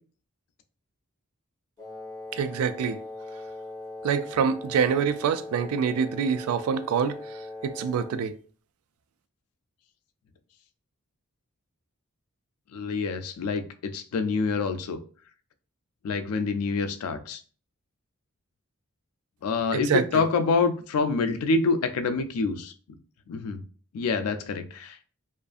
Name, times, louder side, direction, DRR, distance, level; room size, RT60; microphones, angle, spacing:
Wind instrument woodwind instrument, 1.8-8.2, left 2 dB, 15° left, 0.7 m, -40 dB
voice 1, 2.3-3.0 4.0-7.2 7.6-8.3 19.7-20.2, right 7 dB, 85° right, 0.3 m, -26 dB
voice 2, 12.7-15.0 16.0-17.4 19.4-22.7 23.3-23.6 23.9-25.0, left 4 dB, 90° left, 0.4 m, -26 dB
2.5 x 2.3 x 2.4 m
head